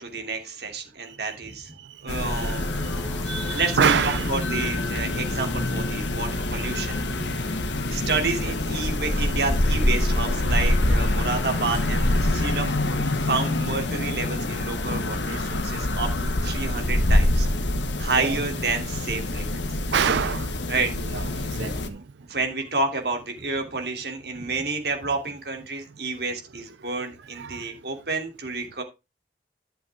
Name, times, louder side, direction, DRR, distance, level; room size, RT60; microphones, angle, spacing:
voice 1, 0.0-1.7 2.0-2.7 3.5-7.0 7.4-7.6 7.9-17.5 18.0-19.6 20.7-20.9 21.9-22.0 22.3-28.8, right 3 dB, 65° right, 2.9 m, -30 dB
sound 1, 2.0-13.5, left 1 dB, 5° left, 4.1 m, -41 dB
sound 2, 2.1-21.9, left 1 dB, 85° left, 1.5 m, -25 dB
voice 2, 3.3-4.3 6.8-7.0 18.2-18.4 19.9-20.6 21.0-22.0 27.4-27.6, right 7 dB, 80° right, 0.5 m, -26 dB
11.0 x 7.6 x 3.5 m
head